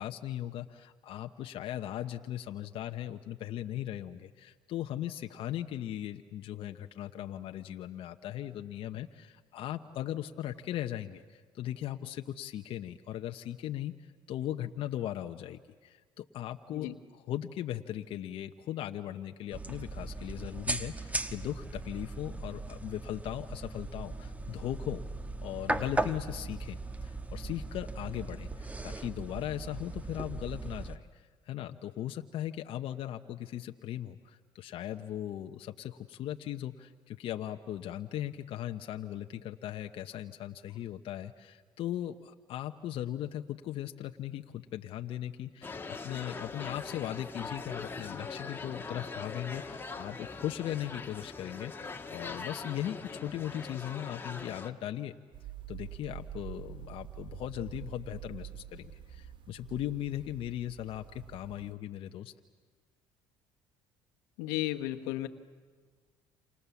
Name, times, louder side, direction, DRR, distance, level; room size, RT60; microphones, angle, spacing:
voice 1, 0.0-13.9 14.3-25.0 25.4-55.1 55.7-62.3, left 12 dB, 60° left, 5 dB, 1.0 m, -38 dB
sound 1, 19.5-31.0, right 2 dB, 15° right, 1.3 m, -38 dB
sound 2, 45.6-54.7, left 4 dB, 20° left, 1.8 m, -42 dB
sound 3, 55.3-61.7, right 12 dB, 50° right, 1.5 m, -46 dB
voice 2, 64.4-65.3, left 16 dB, 90° left, 8 dB, 1.4 m, -34 dB
28.5 x 27.0 x 7.2 m, 1.6 s
supercardioid pair, 80°, 10 cm